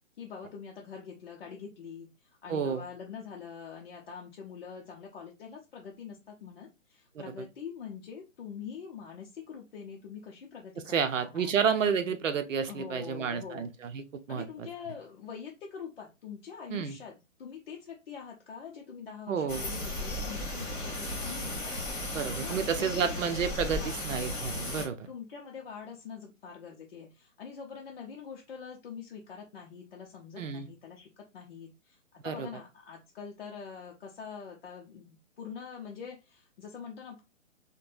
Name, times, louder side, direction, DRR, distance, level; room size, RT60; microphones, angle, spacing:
voice 1, 0.2-11.5 12.1-12.2 12.7-13.7 14.3-21.7 22.4-23.2 23.7-24.0 25.1-37.2, left 6 dB, 50° left, 0.6 m, -44 dB
voice 2, 2.5-2.8 10.9-14.7 16.7-17.0 19.3-19.6 22.1-25.1 30.4-30.7 32.2-32.5, right 6 dB, 70° right, 0.7 m, -30 dB
sound 1, 19.5-24.9, left 1 dB, 20° left, 1.1 m, -35 dB
3.2 x 2.2 x 2.5 m
figure-of-eight pair, 135°, 39 cm